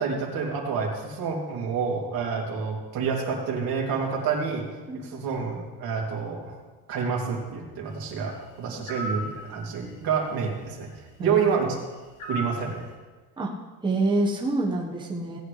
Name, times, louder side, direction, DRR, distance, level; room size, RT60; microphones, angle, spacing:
voice 1, 0.0-4.6 5.0-6.5 6.9-10.9 11.2-11.8 12.3-12.8, right 6 dB, 60° right, -2 dB, 2.9 m, -28 dB
sound 1, 8.9-9.3 12.2-12.6, right 1 dB, 50° left, 2.7 m, -32 dB
voice 2, 11.2-11.6 13.4-13.5 13.8-15.4, right 2 dB, 10° right, -4 dB, 1.3 m, -26 dB
17.5 x 9.4 x 3.3 m, 1.4 s
cardioid pair, 145°, 40 cm